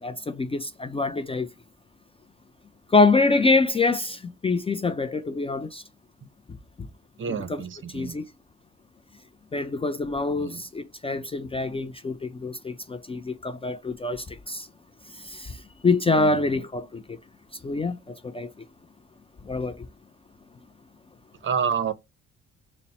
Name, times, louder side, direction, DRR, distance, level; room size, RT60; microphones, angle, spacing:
voice 1, 0.0-1.5 2.9-5.8 7.5-7.6 7.9-8.2 9.5-14.7 15.2-15.6 15.8-17.0 17.6-18.5 19.4-19.8, left 3 dB, 20° left, 0.4 m, -25 dB
voice 2, 7.2-8.2 10.3-10.6 16.2-16.6 21.4-21.9, right 7 dB, 40° right, 0.6 m, -29 dB
4.0 x 2.1 x 4.1 m
cardioid pair, 90°, 30 cm